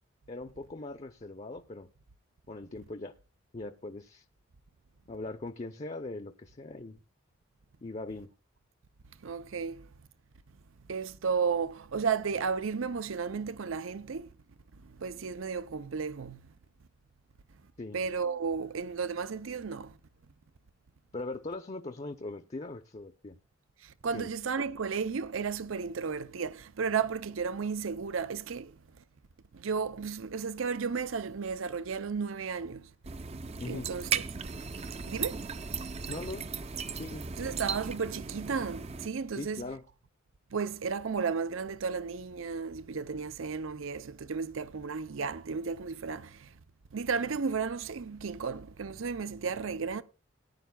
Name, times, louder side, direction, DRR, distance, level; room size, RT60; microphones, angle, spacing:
voice 1, 0.3-1.9 2.5-3.1 3.5-4.2 5.1-7.0 7.8-8.3 17.8-18.0 21.1-23.4 24.1-24.3 33.6-33.9 36.1-36.6 36.9-37.3 39.3-39.8, left 2 dB, 35° left, 0.6 m, -40 dB
voice 2, 9.2-9.9 10.9-14.3 15.0-16.4 17.9-19.9 23.8-28.7 29.5-32.9 33.7-34.2 35.0-35.4 37.4-39.6 40.5-46.5 46.9-50.0, right 5 dB, 85° right, 0.6 m, -33 dB
sound 1, 33.0-39.1, right 6 dB, 30° right, 0.5 m, -36 dB
18.5 x 10.0 x 2.3 m
head